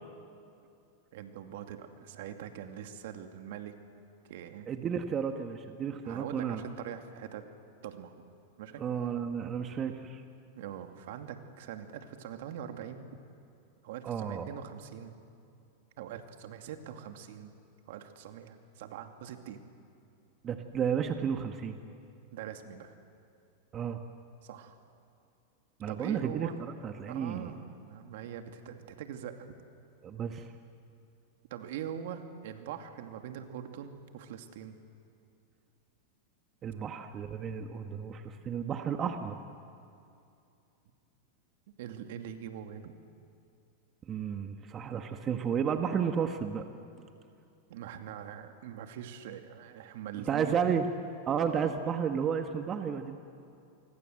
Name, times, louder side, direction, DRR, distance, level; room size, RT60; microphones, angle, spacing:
voice 1, 1.1-3.8 4.3-4.7 6.0-7.4 7.8-8.1 8.6-8.8 10.6-13.1 13.8-15.1 16.0-17.6 17.9-19.6 22.3-22.9 24.4-24.8 25.9-26.6 27.1-29.4 31.5-34.8 41.7-43.0 47.7-50.6, right 9 dB, 65° right, 6 dB, 2.4 m, -43 dB
voice 2, 4.7-6.6 8.8-10.2 14.0-14.5 20.4-21.8 23.7-24.0 25.8-27.5 30.0-30.5 36.6-39.4 44.1-46.7 50.2-50.9 51.2-53.2, right 7 dB, 30° right, 6 dB, 1.6 m, -32 dB
28.0 x 24.0 x 7.9 m, 2.6 s
hypercardioid pair, 110°, 0 cm